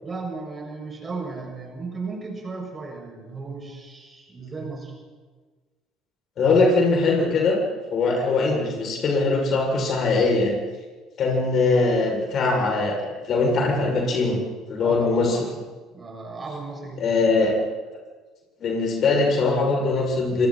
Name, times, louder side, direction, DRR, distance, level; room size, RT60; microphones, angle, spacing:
voice 1, 0.0-4.9 14.8-15.5 15.9-17.4, right 4 dB, 25° right, 1 dB, 7.3 m, -35 dB
voice 2, 6.4-7.6 7.9-10.5 11.2-14.4 14.7-15.4 17.0-17.5 18.6-20.5, left 3 dB, 45° left, 0 dB, 7.1 m, -21 dB
28.0 x 27.5 x 4.5 m, 1.4 s
figure-of-eight pair, 55°, 0 cm